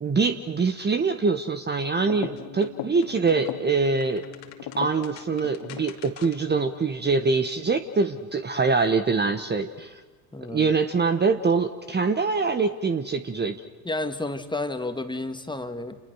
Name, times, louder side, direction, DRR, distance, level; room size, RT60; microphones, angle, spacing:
voice 1, 0.0-4.2 4.8-10.0 10.5-13.6, right 4 dB, 20° right, 8 dB, 1.3 m, -24 dB
sound 1, 2.0-6.5, left 10 dB, 50° left, 2.5 m, -38 dB
voice 2, 10.3-10.7 13.8-16.0, left 2 dB, 10° left, 8 dB, 2.0 m, -31 dB
29.5 x 29.0 x 6.4 m, 1.2 s
hypercardioid pair, 65°, 49 cm